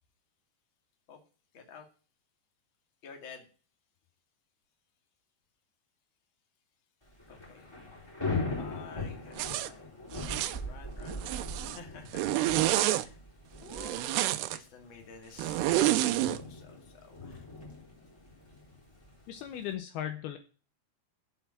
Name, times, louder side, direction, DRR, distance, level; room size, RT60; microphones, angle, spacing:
voice 1, 1.5-1.9 3.0-3.5 7.3-7.7 7.9-8.1 8.6-13.2 13.6-17.5, left 5 dB, 35° left, 4 dB, 2.4 m, -51 dB
Thunder / Rain, 7.1-19.7, left 2 dB, 5° left, 3.3 m, -40 dB
Zipper (clothing), 9.4-9.7 10.2-10.6 11.1-11.8 12.1-13.1 13.7-14.6 15.4-16.4, right 15 dB, 80° right, 2.8 m, -28 dB
voice 2, 19.3-20.4, left 10 dB, 75° left, 7 dB, 2.6 m, -37 dB
8.1 x 7.6 x 8.3 m, 0.38 s
omnidirectional pair, 4.9 m